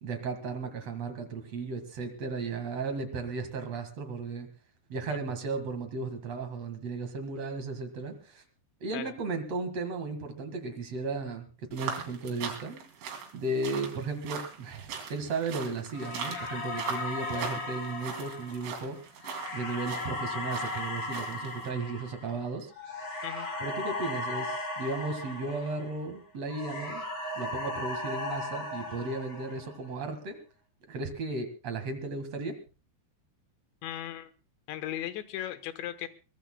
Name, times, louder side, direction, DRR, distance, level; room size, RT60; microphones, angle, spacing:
voice 1, 0.0-4.5 4.9-8.4 8.8-12.9 13.3-19.0 19.5-22.7 23.6-27.0 27.4-30.4 30.8-32.6, right 3 dB, 55° right, 7 dB, 1.9 m, -35 dB
sound 1, 11.7-21.7, right 6 dB, 85° right, 5.1 m, -41 dB
sound 2, 15.9-26.1 26.5-29.9, left 2 dB, 30° left, 4.2 m, -37 dB
voice 2, 33.8-34.3 34.7-36.1, left 12 dB, 75° left, 11 dB, 3.3 m, -37 dB
23.0 x 21.0 x 2.2 m, 0.33 s
omnidirectional pair, 5.3 m